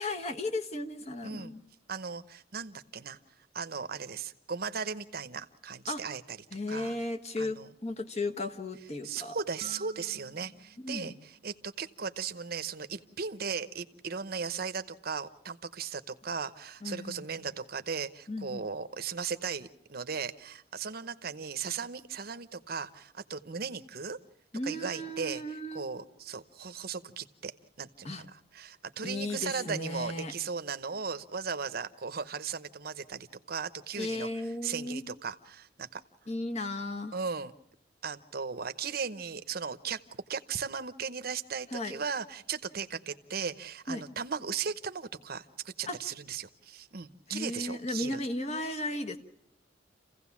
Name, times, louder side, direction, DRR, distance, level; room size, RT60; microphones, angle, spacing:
voice 1, 0.0-1.6 5.9-6.0 6.5-7.6 7.8-9.3 10.8-11.1 16.8-17.2 18.3-18.7 24.5-25.9 28.0-28.2 29.0-30.3 34.0-35.0 36.3-37.2 41.7-42.0 43.9-44.0 45.9-46.0 47.3-49.2, left 2 dB, 35° left, 5 dB, 1.4 m, -35 dB
voice 2, 1.2-1.5 1.9-3.2 3.5-6.4 6.7-6.9 7.4-7.7 9.0-24.2 24.6-27.5 27.8-36.0 37.1-37.5 38.0-48.2, right 6 dB, 55° right, 11 dB, 0.9 m, -37 dB
sound 1, 9.6-12.3, right 3 dB, 30° right, 0.8 m, -52 dB
28.0 x 16.0 x 7.2 m, 0.78 s
head